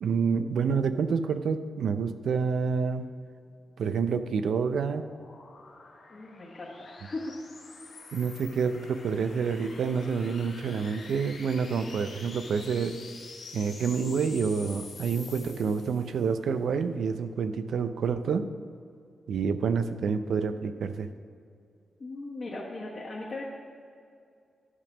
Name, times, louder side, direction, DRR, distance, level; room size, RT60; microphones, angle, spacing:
voice 1, 0.0-3.1 3.8-5.1 8.1-13.0 13.5-18.4 19.3-21.1, right 5 dB, 85° right, 10 dB, 0.5 m, -28 dB
sound 1, 3.7-16.3, left 4 dB, 80° left, 2.4 m, -47 dB
voice 2, 6.1-7.4 22.0-23.4, left 2 dB, 40° left, -7 dB, 1.3 m, -38 dB
11.5 x 5.3 x 6.1 m, 2.4 s
wide cardioid pair, 170°, 0 cm